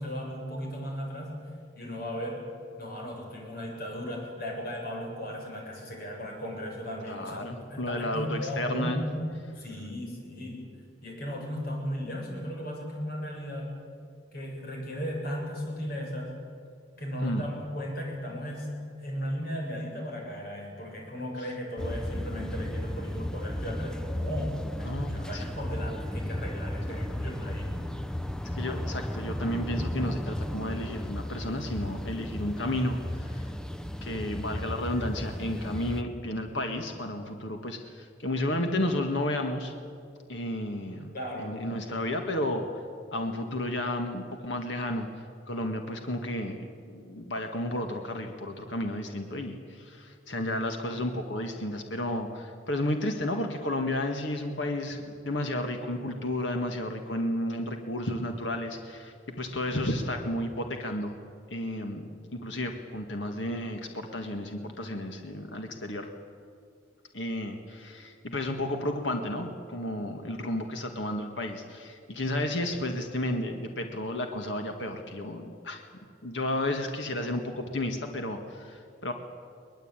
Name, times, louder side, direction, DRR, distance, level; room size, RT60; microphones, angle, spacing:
voice 1, 0.0-1.3 1.8-2.4 2.8-9.3 9.6-10.7 11.0-13.7 14.3-16.3 17.0-18.7 19.0-24.5 24.8-27.7 41.1-41.5, equal, 50° left, 0 dB, 7.2 m, -36 dB
voice 2, 7.1-9.0 17.2-17.5 24.8-25.4 26.9-27.0 28.6-33.5 34.0-39.7 40.3-41.1 41.4-42.7 43.1-45.1 45.5-46.6 46.9-61.1 61.5-62.0 62.3-66.1 67.1-75.9 76.2-79.1, left 1 dB, 70° left, 4 dB, 1.9 m, -32 dB
sound 1, 21.8-36.0, left 1 dB, 5° left, 0.7 m, -34 dB
23.0 x 20.5 x 9.0 m, 2.3 s
head